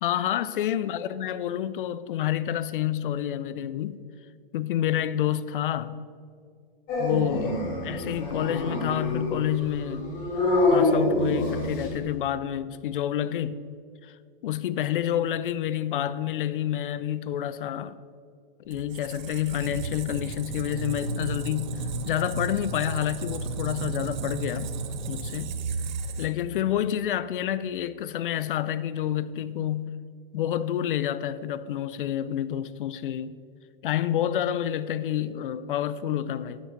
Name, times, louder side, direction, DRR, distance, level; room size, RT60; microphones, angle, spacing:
voice 1, 0.0-4.0 4.5-6.0 7.0-10.2 10.7-13.6 14.0-18.0 18.7-24.7 25.1-25.6 26.2-30.0 30.3-33.3 33.8-36.6, left 11 dB, 65° left, 0.4 m, -29 dB
Dog, 6.9-12.0, left 2 dB, 30° left, 2.6 m, -26 dB
Squeak, 18.7-26.6, right 3 dB, 50° right, 0.8 m, -33 dB
8.5 x 6.0 x 5.7 m
hypercardioid pair, 155°, 29 cm